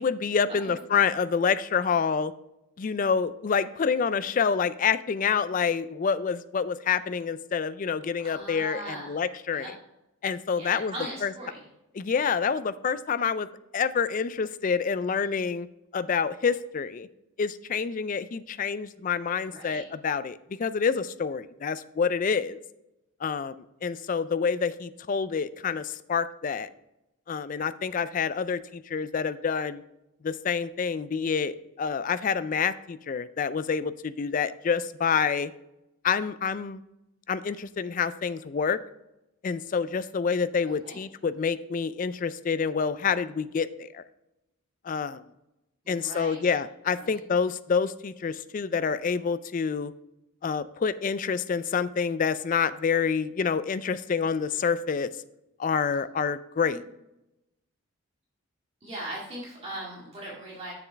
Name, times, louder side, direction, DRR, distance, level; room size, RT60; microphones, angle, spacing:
voice 1, 0.0-2.3 2.8-9.7 10.2-10.9 11.2-11.3 12.0-13.5 13.7-15.7 15.9-17.1 17.4-22.6 23.2-26.7 27.3-29.8 30.2-35.5 36.0-36.8 37.3-38.8 39.4-44.0 44.8-45.2 45.9-49.9 50.4-55.1 55.6-56.8, left 6 dB, 40° left, 14 dB, 0.3 m, -27 dB
voice 2, 8.2-9.2 9.5-9.7 10.6-11.6 19.5-19.8 40.6-41.0 45.8-46.4 47.0-47.1 56.7-56.8 58.8-60.7, right 1 dB, 30° right, -6 dB, 2.0 m, -39 dB
7.0 x 7.0 x 3.4 m, 0.90 s
head